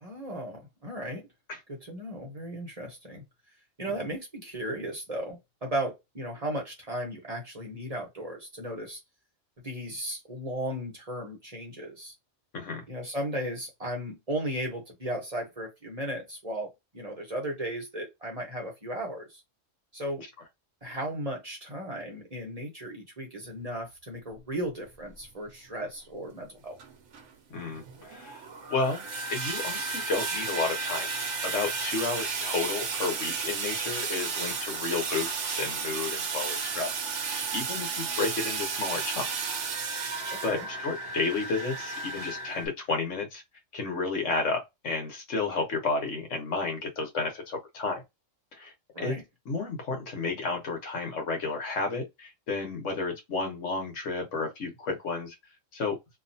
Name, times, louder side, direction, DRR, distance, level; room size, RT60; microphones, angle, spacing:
voice 1, 0.0-1.3 1.7-3.2 3.8-9.0 9.6-12.1 12.9-19.4 19.9-20.2 20.8-26.8 40.3-40.7 48.9-49.2, right 1 dB, 30° right, 1.0 m, -35 dB
voice 2, 12.5-12.8 27.5-29.0 29.3-31.1 31.4-36.9 37.5-39.5 40.4-43.4 43.7-48.0 48.5-48.7 49.0-49.1 49.5-55.4 55.7-56.0, left 3 dB, 70° left, 1.4 m, -32 dB
sound 1, 24.9-25.0 25.7-25.8 26.7-42.7, right 4 dB, 65° right, 1.1 m, -33 dB
2.9 x 2.5 x 2.6 m
omnidirectional pair, 1.3 m